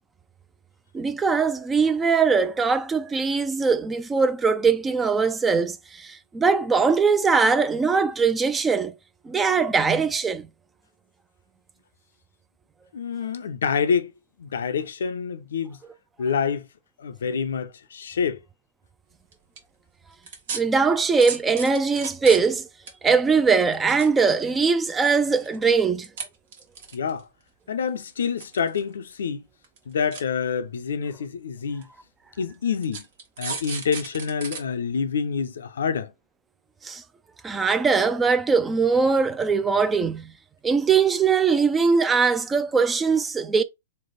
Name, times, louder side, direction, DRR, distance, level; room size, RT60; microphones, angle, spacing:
voice 1, 0.9-8.9 9.3-10.5 20.5-22.7 23.0-26.1 36.8-37.0 37.4-40.3 40.6-43.6, right 5 dB, 15° right, 0.3 m, -21 dB
voice 2, 12.9-14.1 14.4-15.8 16.2-16.7 17.0-18.4 26.9-27.3 27.7-29.4 29.9-31.9 32.4-33.0 33.4-36.1, left 6 dB, 75° left, 0.4 m, -27 dB
sound 1, 19.3-19.6 20.3-20.6 21.2-22.6 22.9-23.0 23.7-24.6 25.1-25.6 26.0-26.2 26.5-27.2 28.0-28.8 29.1-29.2 29.6-29.8 30.1-30.2 31.0-31.1 31.8-31.9 32.8-34.6 35.0-35.1, right 5 dB, 60° right, 1.1 m, -34 dB
3.3 x 2.1 x 3.9 m
hypercardioid pair, 115°, 0 cm